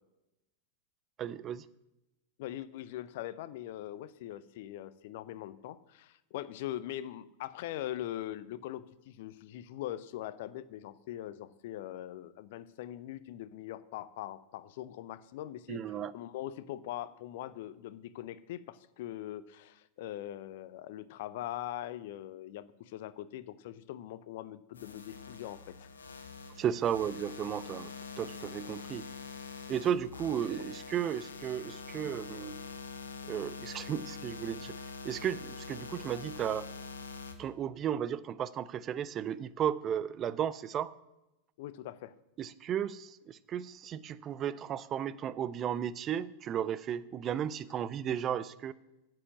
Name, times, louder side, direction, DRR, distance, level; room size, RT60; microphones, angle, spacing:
voice 1, 1.2-1.7 15.7-16.1 26.6-27.9 28.2-29.1 29.7-32.6 33.3-34.7 35.0-36.7 37.4-40.9 42.4-48.7, right 9 dB, 30° right, 17 dB, 0.4 m, -34 dB
voice 2, 2.4-25.9 30.5-30.6 41.6-42.1, left 13 dB, 50° left, 16 dB, 0.6 m, -42 dB
sound 1, 24.8-37.3, left 5 dB, 70° left, 1.3 m, -45 dB
9.8 x 7.7 x 7.5 m, 0.95 s
figure-of-eight pair, 90°, 0 cm